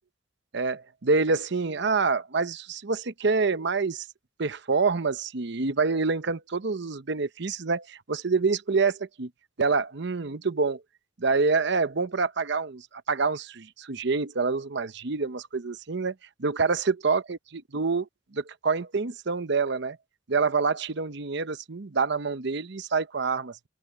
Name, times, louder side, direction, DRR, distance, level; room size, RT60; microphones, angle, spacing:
voice 1, 0.5-4.1 4.4-9.3 9.6-10.8 11.2-16.1 16.4-20.0 20.3-23.6, right 4 dB, 60° right, 0.8 m, -27 dB
open air
head